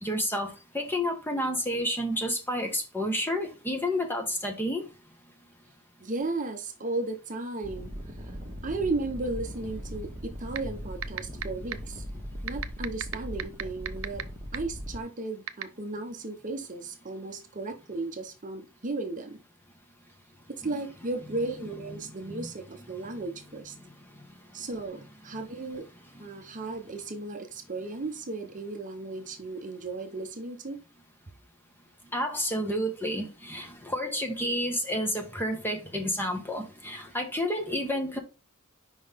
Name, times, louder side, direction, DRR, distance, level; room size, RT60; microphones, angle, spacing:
voice 1, 0.0-4.8 21.3-21.4 21.9-22.5 32.1-38.2, equal, 10° left, 1.2 m, -30 dB
voice 2, 6.0-7.9 8.3-8.4 8.6-12.0 12.4-14.3 14.5-19.4 20.5-23.7 24.5-25.9 26.2-30.8, right 3 dB, 35° right, 0.8 m, -35 dB
sound 1, 7.6-15.0, equal, 20° right, 1.5 m, -39 dB
sound 2, 10.6-10.7 11.0-11.4 11.7-11.8 12.5-14.2 14.5-14.6 15.5-15.6, right 11 dB, 65° right, 0.5 m, -30 dB
5.2 x 3.9 x 5.1 m
head